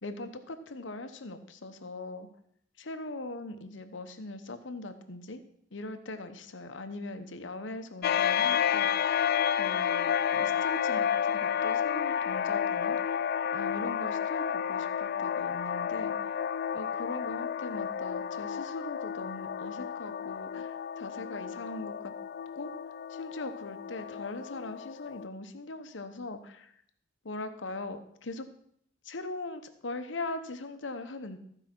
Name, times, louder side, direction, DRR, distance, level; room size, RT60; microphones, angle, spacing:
voice 1, 0.0-2.3 2.8-5.4 5.7-9.2 9.5-13.2 13.5-16.2 16.7-22.1 22.5-22.7 23.1-26.7 27.2-28.4 29.0-31.4, left 2 dB, 65° left, 8 dB, 1.0 m, -40 dB
sound 1, 8.0-25.3, left 8 dB, 50° left, 0.3 m, -31 dB
14.5 x 4.9 x 6.0 m, 0.69 s
head